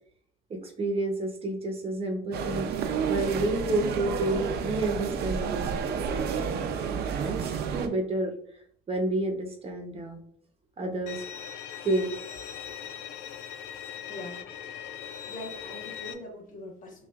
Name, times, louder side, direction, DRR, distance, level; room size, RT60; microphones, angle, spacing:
voice 1, 0.5-2.7 3.1-6.2 7.2-8.3 8.9-10.2 10.8-11.2 11.8-12.1, right 2 dB, 35° right, 3 dB, 0.9 m, -30 dB
sound 1, 2.3-7.9, right 6 dB, 70° right, 0.6 m, -30 dB
Bowed string instrument, 11.1-16.1, left 9 dB, 80° left, 0.5 m, -40 dB
voice 2, 14.1-14.9 15.3-17.1, left 1 dB, 50° left, 0 dB, 1.3 m, -42 dB
5.6 x 2.4 x 2.4 m, 0.63 s
cardioid pair, 110°, 17 cm